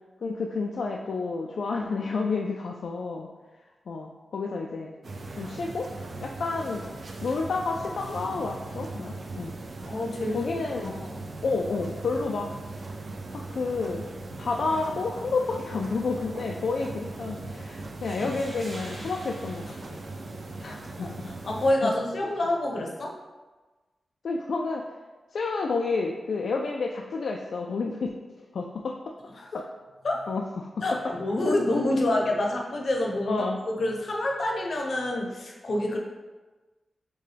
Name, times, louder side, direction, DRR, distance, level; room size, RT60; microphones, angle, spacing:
voice 1, 0.2-3.3 3.9-4.9 5.4-5.9 6.2-6.8 7.2-9.6 10.3-11.0 11.4-12.5 13.3-14.0 14.4-20.0 20.6-21.1 21.8-21.9 24.2-24.8 25.3-28.1 28.5-29.0 29.5-29.7 30.3-30.7 31.5-31.6 33.2-33.6, left 4 dB, 70° left, 0 dB, 0.3 m, -30 dB
sound 1, 5.0-21.7, right 2 dB, 50° right, 0.4 m, -39 dB
voice 2, 9.9-10.5 10.8-11.3 21.0-23.2 29.4-29.5 30.0-30.3 30.8-36.0, left 1 dB, 55° left, 0 dB, 0.7 m, -27 dB
sound 2, 17.8-20.8, right 1 dB, 65° right, 1.3 m, -47 dB
6.6 x 2.2 x 3.3 m, 1.2 s
wide cardioid pair, 130°, 0 cm